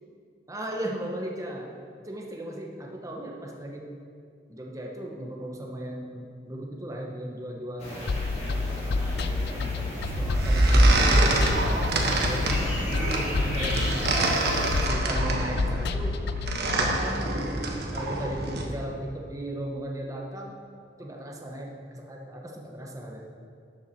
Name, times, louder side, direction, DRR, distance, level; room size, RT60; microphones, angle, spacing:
voice 1, 0.5-1.7 2.0-3.9 4.5-8.1 8.5-11.0 11.7-14.1 14.8-16.2 16.7-17.3 17.9-20.5 21.0-23.2, right 1 dB, 20° right, -1 dB, 1.0 m, -36 dB
sound 1, 7.8-14.8, equal, 40° left, 2.2 m, -35 dB
sound 2, 8.1-17.0, left 3 dB, 65° left, 0.5 m, -29 dB
sound 3, 10.0-18.7, right 1 dB, 65° right, 1.2 m, -25 dB
12.5 x 7.0 x 4.5 m, 2.3 s
head